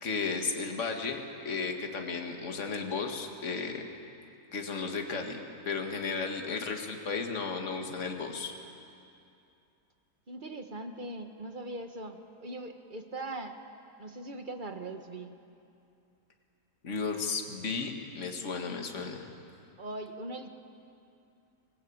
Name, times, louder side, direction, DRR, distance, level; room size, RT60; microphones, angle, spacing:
voice 1, 0.0-3.8 4.5-5.4 5.7-8.5 16.8-19.3, left 4 dB, 50° left, 3 dB, 2.1 m, -34 dB
voice 2, 10.3-13.6 14.0-15.4 19.8-20.5, right 2 dB, 30° right, 6 dB, 1.5 m, -40 dB
27.0 x 20.0 x 8.7 m, 2.6 s
omnidirectional pair, 1.7 m